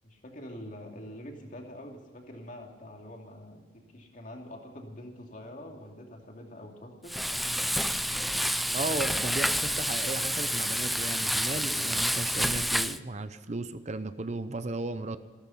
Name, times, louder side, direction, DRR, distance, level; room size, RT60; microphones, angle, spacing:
voice 1, 0.0-7.4 14.7-15.2, left 1 dB, 45° left, 1 dB, 2.7 m, -45 dB
Frying (food), 7.1-13.0, equal, ahead, 0.4 m, -29 dB
voice 2, 8.7-15.2, right 2 dB, 40° right, 11 dB, 0.7 m, -35 dB
14.5 x 13.0 x 5.7 m, 1.4 s
head